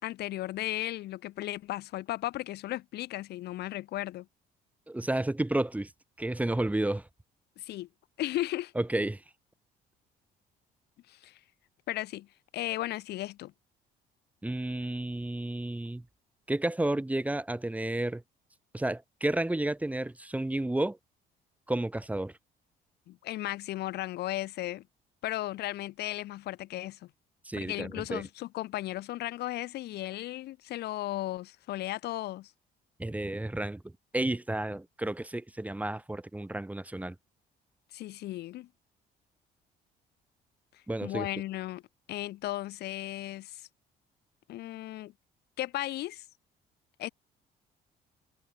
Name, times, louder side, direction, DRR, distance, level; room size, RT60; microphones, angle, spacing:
voice 1, 0.0-4.3 7.6-7.9 8.2-8.7 11.1-11.4 11.9-12.3 12.5-13.5 23.1-24.8 25.2-27.0 27.5-32.5 37.9-38.7 41.0-41.8 42.1-43.7 44.5-45.1 45.6-46.2 47.0-47.1, left 15 dB, 75° left, 3.9 m, -35 dB
voice 2, 4.9-5.9 6.2-7.1 8.8-9.2 14.4-16.1 16.5-18.2 18.7-21.0 21.7-22.3 27.4-28.2 33.0-37.2 40.9-41.3, right 1 dB, 10° right, 3.3 m, -31 dB
cardioid pair, 110°, 17 cm